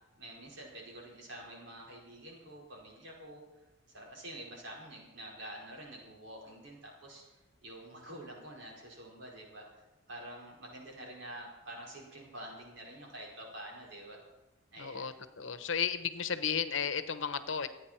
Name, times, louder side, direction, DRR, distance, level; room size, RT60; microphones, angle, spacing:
voice 1, 0.2-3.4 3.9-7.3 7.6-9.8 10.1-14.2 14.7-15.1, right 1 dB, 65° right, -2 dB, 5.0 m, -47 dB
voice 2, 14.8-17.7, left 7 dB, 75° left, 11 dB, 1.0 m, -34 dB
27.0 x 9.4 x 4.5 m, 1.1 s
head